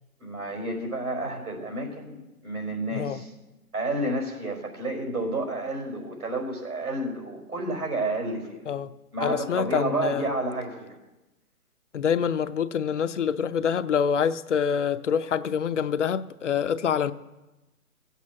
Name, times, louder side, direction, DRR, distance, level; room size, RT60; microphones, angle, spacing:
voice 1, 0.2-3.3 3.7-8.6 9.1-11.0, right 2 dB, 85° right, 4.9 m, -30 dB
voice 2, 9.2-10.2 11.9-17.1, left 7 dB, 55° left, 0.7 m, -26 dB
16.0 x 8.3 x 7.3 m
hypercardioid pair, 155°, 44 cm